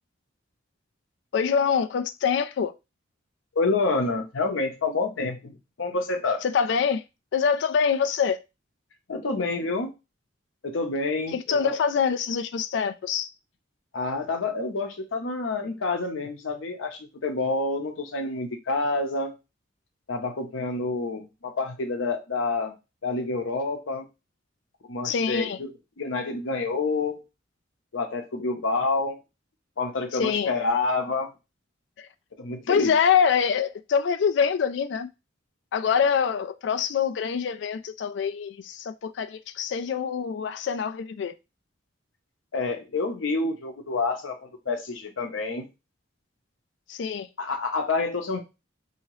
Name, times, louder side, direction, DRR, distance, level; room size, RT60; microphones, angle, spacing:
voice 1, 1.3-2.7 6.4-7.0 7.3-8.4 11.3-13.3 25.0-25.6 30.1-30.5 32.0-32.1 32.7-35.1 35.7-41.3 46.9-47.3, left 7 dB, 60° left, 0.3 m, -25 dB
voice 2, 3.6-6.5 9.1-9.9 10.6-11.8 13.9-19.3 20.1-22.7 23.0-24.1 24.9-27.2 27.9-29.2 29.8-31.3 32.4-32.9 42.5-45.7 47.4-48.4, left 3 dB, 85° left, 0.7 m, -28 dB
2.8 x 2.8 x 3.0 m
head